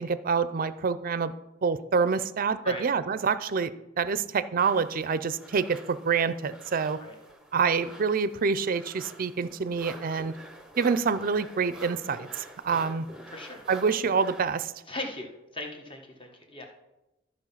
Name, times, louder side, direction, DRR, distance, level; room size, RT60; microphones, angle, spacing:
voice 1, 0.0-1.3 1.6-7.0 7.5-10.3 10.8-13.1 13.7-14.7, right 5 dB, 45° right, 15 dB, 0.4 m, -27 dB
sound 1, 4.6-14.4, right 1 dB, 5° right, 0.9 m, -47 dB
voice 2, 13.3-13.6 14.9-16.7, left 2 dB, 25° left, 3 dB, 1.3 m, -38 dB
13.5 x 4.4 x 5.7 m, 0.95 s
head